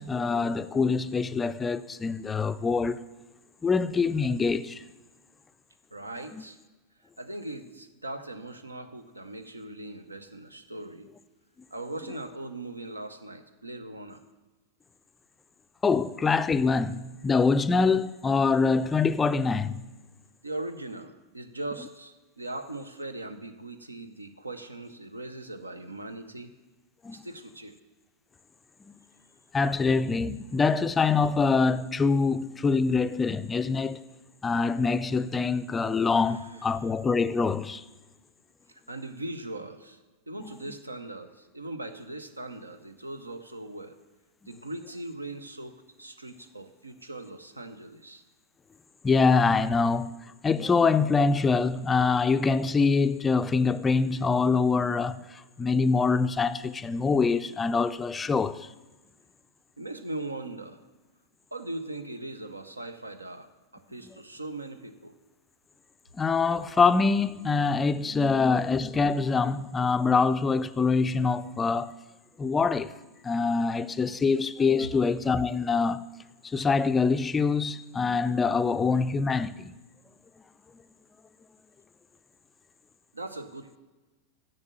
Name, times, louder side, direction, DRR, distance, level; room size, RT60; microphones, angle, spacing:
voice 1, 0.0-3.0 3.6-4.8 6.3-6.4 15.8-19.8 27.0-27.2 28.9-29.0 29.5-34.0 34.4-37.8 49.0-50.1 50.4-58.7 66.2-71.9 72.4-72.9 73.2-76.0 76.4-79.7, left 4 dB, 15° left, 0.3 m, -24 dB
voice 2, 5.9-6.6 7.2-11.1 11.7-14.2 20.4-26.5 27.1-27.7 36.3-36.5 38.7-40.0 40.3-44.0 44.5-48.2 59.8-60.8 61.5-65.1 83.1-83.8, right 2 dB, 80° right, 0.7 m, -40 dB
7.2 x 6.6 x 7.7 m
figure-of-eight pair, 90°, 0 cm